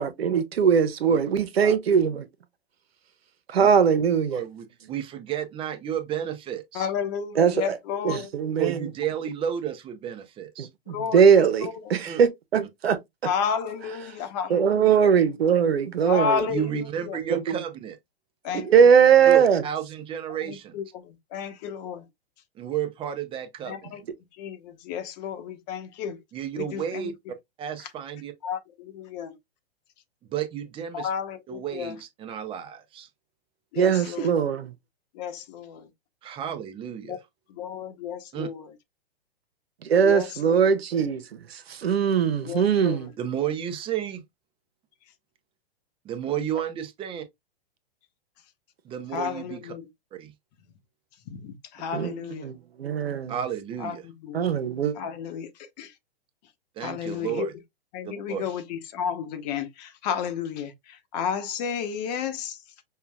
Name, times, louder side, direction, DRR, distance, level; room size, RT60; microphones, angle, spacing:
voice 1, 0.0-2.2 3.5-4.4 7.3-7.8 8.0-8.8 10.6-13.3 14.5-16.5 17.3-17.4 18.5-19.6 33.8-34.7 39.8-41.2 41.8-43.1 51.9-53.3 54.3-54.9, right 7 dB, 85° right, 0.9 m, -21 dB
voice 2, 4.3-6.9 8.6-10.7 12.0-12.2 16.5-18.0 19.3-20.8 22.6-24.0 26.3-27.1 27.6-28.3 30.3-31.1 31.5-33.1 36.2-37.2 38.3-38.5 43.2-44.2 46.0-47.3 48.8-49.8 50.1-50.3 53.3-54.1 56.8-57.5 58.0-58.5, right 9 dB, 15° right, 0.5 m, -32 dB
voice 3, 6.8-8.3 10.9-11.2 11.6-11.7 13.3-14.8 16.1-16.6 18.4-18.7 20.7-20.8 21.3-22.0 23.7-23.8 24.4-24.6 24.9-26.2 26.7-26.8 28.4-28.6 28.9-29.3 30.9-31.9 33.7-34.3 35.2-35.8 37.1-37.2 37.6-38.6 40.0-40.6 42.4-43.0 49.1-49.8 51.3-52.5 53.8-53.9 54.2-54.4 55.0-55.5 55.8-55.9 56.8-57.5 57.9-58.6 58.9-60.7 61.1-62.5, left 7 dB, 45° left, 0.9 m, -31 dB
5.5 x 2.3 x 2.2 m
hypercardioid pair, 130°, 30 cm